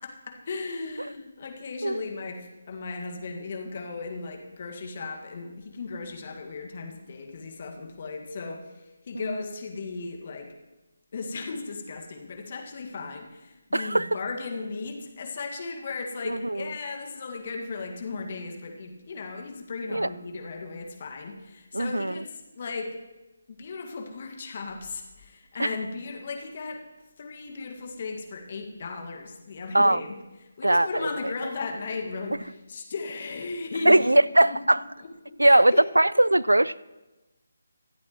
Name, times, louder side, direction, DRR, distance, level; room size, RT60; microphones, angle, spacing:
voice 1, 0.0-10.5 11.1-22.9 23.5-26.8 27.2-30.2 30.6-34.1 34.4-34.6 35.3-35.8, left 4 dB, 40° left, 3 dB, 1.8 m, -36 dB
voice 2, 13.7-14.1 16.3-16.7 19.9-20.1 21.7-22.2 25.6-25.7 29.7-30.0 30.6-30.9 33.9-34.8 35.4-36.9, right 1 dB, 85° right, 20 dB, 0.4 m, -20 dB
25.0 x 8.4 x 3.1 m, 1.1 s
figure-of-eight pair, 150°, 0 cm